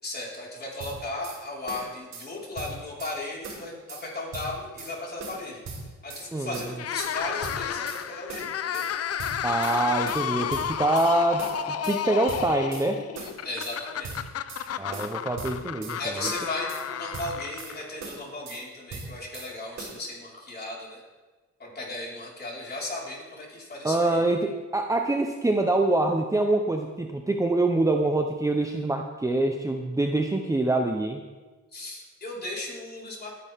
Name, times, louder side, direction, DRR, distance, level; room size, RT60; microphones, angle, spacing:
voice 1, 0.0-8.8 13.4-14.2 16.0-21.0 21.6-24.2 31.7-33.3, left 2 dB, 35° left, -4 dB, 5.0 m, -36 dB
sound 1, 0.8-1.4 1.7-2.3 2.6-3.2 3.4-4.1 4.3-4.9 5.2-6.3 6.5-7.1 7.4-8.0 8.3-8.9 9.2-9.8 10.1-11.1 11.4-12.0 12.3-12.9 13.2-13.8 14.0-14.7 14.9-16.0 16.2-16.9 17.1-17.7 18.0-18.6 18.9-19.5 19.8-20.0, right 4 dB, 65° right, 4.6 m, -39 dB
voice 2, 6.3-6.7 9.4-13.0 14.8-16.0 23.8-31.2, right 2 dB, 10° right, 3 dB, 1.0 m, -25 dB
sound 2, 6.7-18.0, left 9 dB, 55° left, 0.7 m, -32 dB
20.0 x 10.0 x 3.7 m, 1.3 s
cardioid pair, 90°, 30 cm